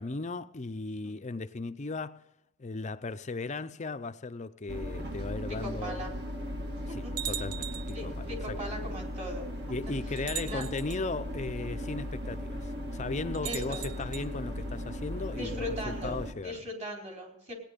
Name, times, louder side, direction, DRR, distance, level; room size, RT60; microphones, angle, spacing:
voice 1, 0.0-2.3 2.6-6.2 6.9-8.8 9.7-16.6, left 3 dB, 30° left, 0.5 m, -37 dB
sound 1, 4.7-16.3, equal, 50° right, 1.7 m, -37 dB
voice 2, 5.6-6.1 6.9-7.3 7.9-9.5 10.4-10.6 13.4-13.9 15.4-17.5, equal, 30° right, 4.3 m, -39 dB
sound 2, 7.2-8.0 9.2-9.3 10.2-11.0 13.3-14.3, right 10 dB, 85° right, 0.7 m, -39 dB
17.5 x 10.5 x 5.2 m
head